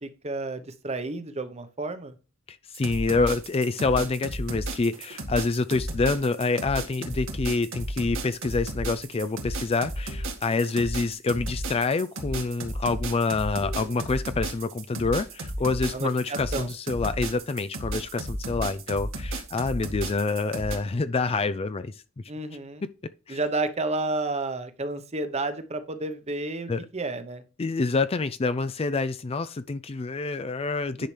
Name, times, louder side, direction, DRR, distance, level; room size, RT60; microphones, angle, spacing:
voice 1, 0.0-2.1 15.9-16.7 22.3-22.8 23.3-27.4 31.0-31.1, right 2 dB, 30° right, 1.0 m, -31 dB
voice 2, 2.5-21.9 23.3-23.4 26.7-26.9 27.6-31.1, left 3 dB, 30° left, 0.4 m, -27 dB
sound 1, 2.7-20.8, right 1 dB, 70° right, 1.9 m, -33 dB
sound 2, 10.1-10.6 13.6-14.5, equal, 75° left, 3.0 m, -47 dB
10.5 x 5.7 x 3.3 m
head